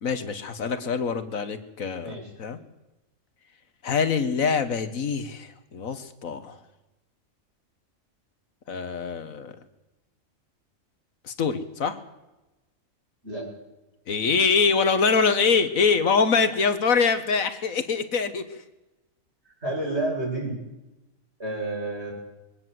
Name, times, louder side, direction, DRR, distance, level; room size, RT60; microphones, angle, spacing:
voice 1, 0.0-2.6 3.8-6.6 8.7-9.5 11.2-12.0 14.1-18.6, left 5 dB, 75° left, 11 dB, 1.8 m, -24 dB
voice 2, 19.6-20.5 21.4-22.1, right 2 dB, 50° right, -2 dB, 7.5 m, -29 dB
22.0 x 17.5 x 7.7 m, 1.0 s
omnidirectional pair, 1.4 m